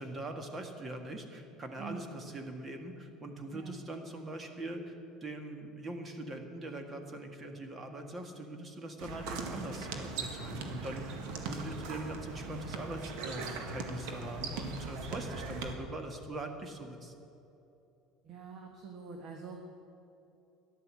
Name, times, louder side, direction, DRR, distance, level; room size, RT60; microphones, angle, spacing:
voice 1, 0.0-4.9 5.2-17.1, right 1 dB, 25° right, 5 dB, 1.7 m, -42 dB
voice 2, 3.5-3.8 18.2-19.6, right 6 dB, 50° right, 3 dB, 1.5 m, -45 dB
sound 1, 9.0-15.8, right 4 dB, 75° right, 1.7 m, -40 dB
14.0 x 11.0 x 7.6 m, 2.8 s
cardioid pair, 125°, 0 cm